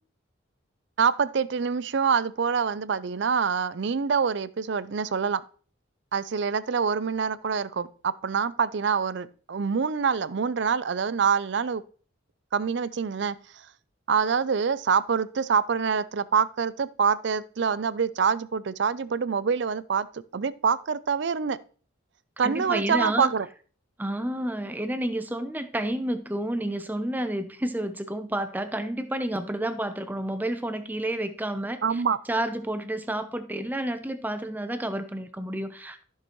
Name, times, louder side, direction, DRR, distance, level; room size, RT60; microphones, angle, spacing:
voice 1, 1.0-5.4 6.1-11.8 12.5-13.4 14.1-21.6 22.4-23.5 31.8-32.2, right 6 dB, 60° right, 0.4 m, -25 dB
voice 2, 22.4-23.3 24.0-32.0 32.3-36.0, right 1 dB, 10° right, 0.6 m, -30 dB
13.5 x 6.6 x 3.0 m
head